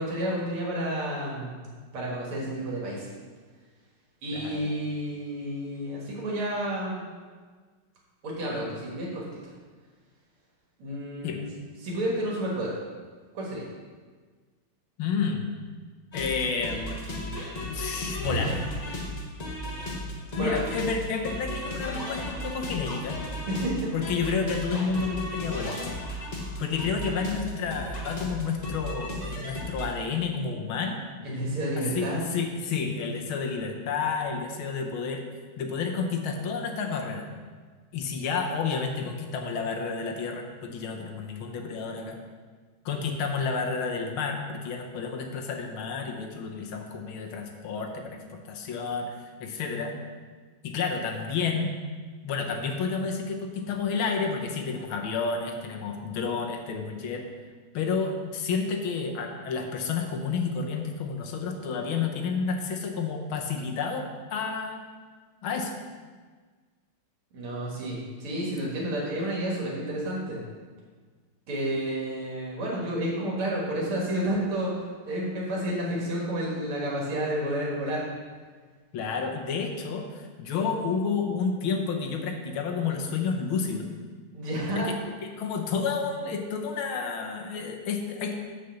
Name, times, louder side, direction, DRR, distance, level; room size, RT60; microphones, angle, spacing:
voice 1, 0.0-3.1 4.2-7.0 8.2-9.5 10.8-11.4 11.8-12.7 13.3-13.7 20.3-20.6 23.5-23.9 25.0-25.2 31.2-32.2 67.3-70.4 71.5-78.0 84.3-84.9, right 1 dB, 90° right, -4 dB, 2.6 m, -30 dB
voice 2, 4.3-4.7 11.2-11.4 15.0-15.6 16.1-18.6 20.4-23.2 23.9-25.8 26.6-31.0 31.8-32.1 32.3-35.2 35.6-37.3 37.9-42.2 42.9-49.1 49.4-49.9 50.6-51.7 52.2-57.3 57.7-64.8 65.4-65.7 78.9-83.9 84.8-84.9 85.2-88.3, left 5 dB, 75° left, 3 dB, 1.8 m, -30 dB
sound 1, 16.1-29.9, left 1 dB, 30° left, 0.9 m, -34 dB
6.4 x 5.6 x 7.1 m, 1.5 s
omnidirectional pair, 2.3 m